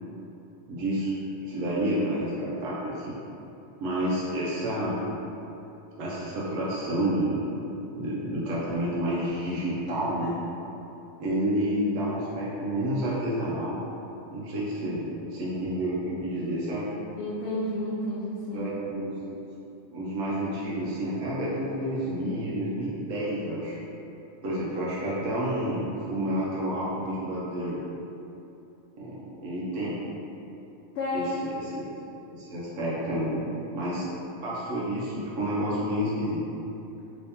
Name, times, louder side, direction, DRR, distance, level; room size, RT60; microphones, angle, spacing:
voice 1, 0.7-1.1 1.4-3.1 3.8-5.0 6.0-7.4 7.9-10.3 11.2-13.8 14.3-16.9 18.5-19.4 19.9-23.8 24.4-27.8 29.0-30.0 31.1-31.3 31.5-31.7 32.3-34.1 34.4-36.4, right 1 dB, 85° right, -7 dB, 1.0 m, -29 dB
voice 2, 17.2-18.7 30.9-31.5, left 1 dB, 65° left, -7 dB, 0.7 m, -31 dB
3.1 x 2.8 x 3.4 m, 2.9 s
omnidirectional pair, 1.3 m